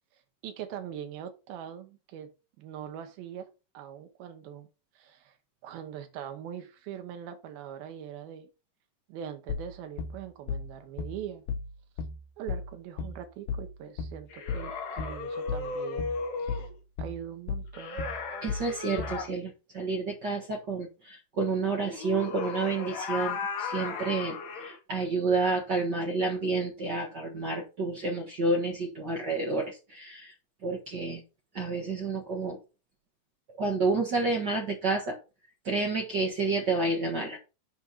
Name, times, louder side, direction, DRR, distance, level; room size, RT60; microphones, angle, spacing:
voice 1, 0.4-2.3 2.6-3.5 3.7-4.7 5.0-5.4 5.6-8.5 9.1-11.4 12.4-16.1 16.4-16.6 17.0-18.0, right 9 dB, 85° right, 3.0 m, -42 dB
sound 1, 9.5-19.3, left 5 dB, 85° left, 2.7 m, -35 dB
sound 2, 14.3-16.7 17.7-19.3 21.8-24.8, left 4 dB, 60° left, 2.7 m, -35 dB
voice 2, 18.4-30.3 30.6-31.2 31.5-32.6 33.6-35.2 35.6-37.4, right 3 dB, 65° right, 1.0 m, -30 dB
8.9 x 5.0 x 4.1 m
omnidirectional pair, 4.2 m